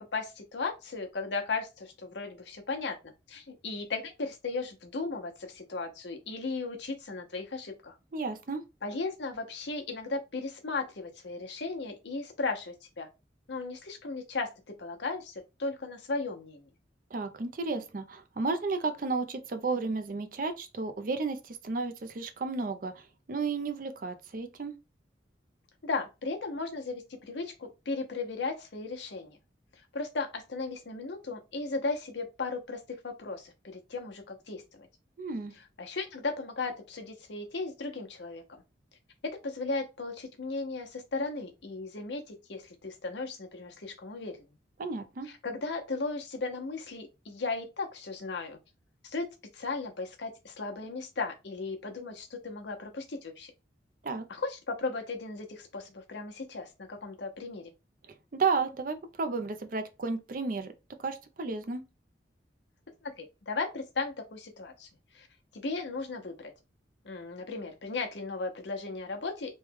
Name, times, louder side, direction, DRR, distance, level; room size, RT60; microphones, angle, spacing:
voice 1, 0.0-8.0 8.8-13.1 13.5-15.3 15.6-16.6 25.8-29.4 29.9-34.9 35.8-38.6 39.2-44.5 45.4-48.6 49.0-49.3 49.5-53.5 54.3-57.7 63.0-64.9 65.1-65.3 65.5-66.5 67.0-69.6, left 3 dB, 70° left, 0.8 m, -36 dB
voice 2, 8.1-8.6 17.1-24.7 35.2-35.5 44.8-45.3 54.0-54.2 58.1-60.7 61.0-61.8, right 4 dB, 45° right, 0.5 m, -33 dB
3.1 x 2.2 x 3.5 m
head